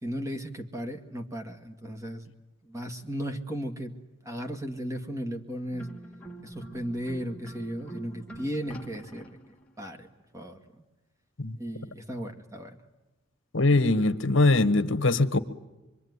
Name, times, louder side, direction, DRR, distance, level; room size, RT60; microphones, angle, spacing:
voice 1, 0.0-2.3 2.6-3.9 4.2-5.9 6.4-9.4 9.8-10.1 10.3-10.6 11.6-12.8, equal, 15° right, 6 dB, 2.0 m, -35 dB
sound 1, 5.7-9.7, right 1 dB, 5° left, 2.3 m, -45 dB
voice 2, 13.5-15.4, left 2 dB, 65° left, 10 dB, 1.4 m, -22 dB
25.5 x 24.0 x 9.6 m, 1.1 s
head